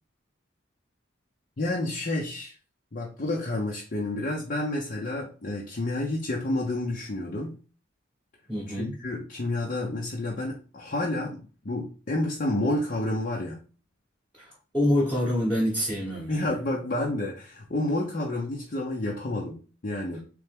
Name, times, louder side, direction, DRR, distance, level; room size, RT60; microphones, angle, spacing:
voice 1, 1.6-2.5 2.9-7.6 8.7-13.6 16.3-20.2, left 1 dB, 40° left, 0.7 m, -30 dB
voice 2, 8.5-9.0 14.4-16.5, left 1 dB, 5° left, 1.1 m, -26 dB
3.4 x 3.3 x 3.4 m
head